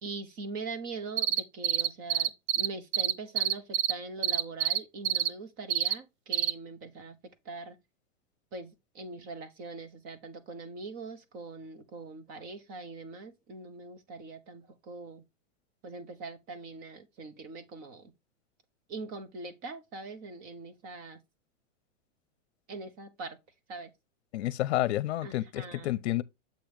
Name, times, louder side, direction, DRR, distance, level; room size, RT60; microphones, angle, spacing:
voice 1, 0.0-7.2 7.4-7.8 8.5-15.2 15.8-18.1 18.9-21.2 22.7-23.4 23.7-23.9 25.2-25.9, right 3 dB, 25° right, 0.9 m, -42 dB
sound 1, 1.2-2.7 2.9-3.9 4.2-4.8 5.0-5.3 5.7-5.9 6.3-6.5, right 11 dB, 40° right, 0.5 m, -26 dB
voice 2, 24.3-26.2, left 15 dB, 60° left, 0.8 m, -30 dB
7.7 x 3.0 x 5.1 m
supercardioid pair, 165°, 37 cm